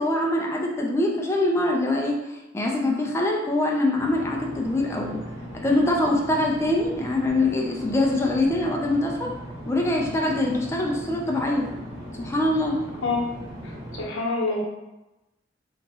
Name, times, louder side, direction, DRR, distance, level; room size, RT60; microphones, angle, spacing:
voice 1, 0.0-2.2 2.5-5.2 5.6-9.3 9.7-11.7 12.2-12.8, left 1 dB, 15° left, -1 dB, 0.4 m, -23 dB
sound 1, 4.0-14.0, equal, 20° right, 0.7 m, -38 dB
voice 2, 13.6-14.6, left 3 dB, 85° left, -2 dB, 0.8 m, -27 dB
3.4 x 2.9 x 2.8 m, 0.99 s
head